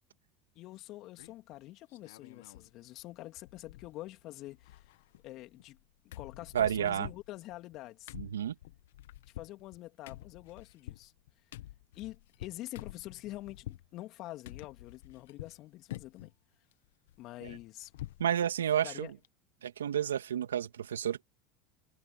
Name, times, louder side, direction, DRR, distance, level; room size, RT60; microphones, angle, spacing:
voice 1, 0.5-4.9 5.2-5.8 6.0-8.1 9.3-11.1 11.9-16.3 17.2-17.9 18.8-19.1, left 16 dB, 55° left, 3.2 m, -46 dB
sound 1, 1.2-1.5 1.9-2.7 3.0-3.1 3.4-4.2 4.5-5.8 6.1-13.9 14.4-15.6 15.9-16.3 16.7-18.3 18.6-18.7 19.1-19.3, left 15 dB, 75° left, 1.7 m, -48 dB
voice 2, 6.5-7.1 8.1-8.5 17.4-17.6 18.2-19.1 19.6-21.2, right 9 dB, 85° right, 2.5 m, -31 dB
hypercardioid pair, 80°, 0 cm